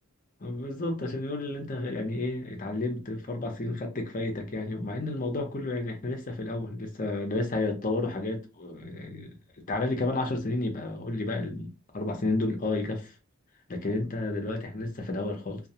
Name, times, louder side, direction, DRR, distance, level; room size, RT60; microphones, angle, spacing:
voice 1, 0.4-9.4 9.7-11.7 11.9-13.1 13.7-15.6, left 2 dB, 40° left, 0.6 m, -31 dB
2.3 x 2.2 x 2.8 m
head